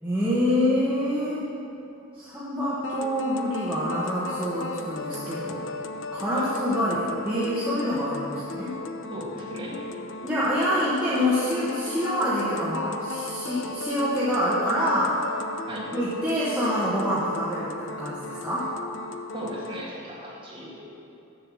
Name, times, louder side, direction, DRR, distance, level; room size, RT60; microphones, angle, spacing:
voice 1, 0.0-1.5 2.1-5.6 6.1-8.7 10.2-15.2 15.9-18.7, equal, 5° right, -11 dB, 1.2 m, -26 dB
sound 1, 2.8-19.8, left 3 dB, 60° left, 0.4 m, -36 dB
voice 2, 9.1-9.8 15.7-15.9 19.3-20.8, equal, 25° right, -6 dB, 1.9 m, -37 dB
7.0 x 6.7 x 7.6 m, 2.9 s
head